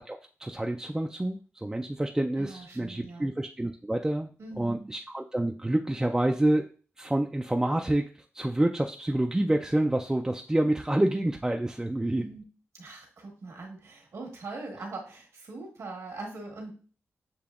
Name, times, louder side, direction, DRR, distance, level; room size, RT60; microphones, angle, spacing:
voice 1, 0.0-4.3 4.6-6.7 7.0-12.3, right 1 dB, 10° right, 3 dB, 0.3 m, -28 dB
voice 2, 2.4-3.3 4.4-4.9 12.0-12.4 12.7-16.7, right 3 dB, 80° right, 0 dB, 1.3 m, -41 dB
6.8 x 2.8 x 2.4 m, 0.40 s
wide cardioid pair, 85°, 5 cm